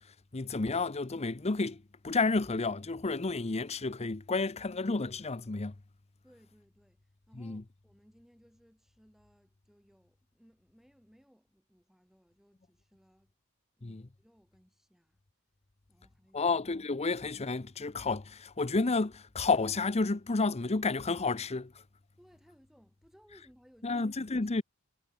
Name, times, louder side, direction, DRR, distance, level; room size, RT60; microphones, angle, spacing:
voice 1, 0.3-5.7 7.4-7.6 13.8-14.0 16.3-21.7 23.8-24.6, left 3 dB, 30° left, 0.7 m, -31 dB
voice 2, 6.2-13.3 13.8-15.2 15.9-16.5 22.2-24.0 24.4-24.6, equal, ahead, 6.6 m, -63 dB
head